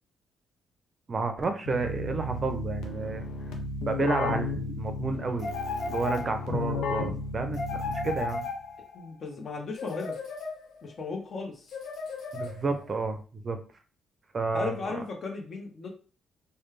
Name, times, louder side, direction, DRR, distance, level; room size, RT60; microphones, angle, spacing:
voice 1, 1.1-3.2 3.9-5.5 5.9-8.5 12.3-13.6 14.3-15.0, right 4 dB, 40° right, 7 dB, 0.5 m, -31 dB
Keyboard (musical), 1.6-8.5, left 3 dB, 90° left, 0.6 m, -34 dB
sound 1, 5.4-6.7 7.5-9.1 9.7-10.9 11.7-12.9, left 4 dB, 70° left, 1.3 m, -36 dB
voice 2, 8.9-10.2 10.8-11.7 14.5-15.9, left 4 dB, 45° left, 2 dB, 1.0 m, -36 dB
3.2 x 2.2 x 3.2 m, 0.38 s
cardioid pair, 90°, 0 cm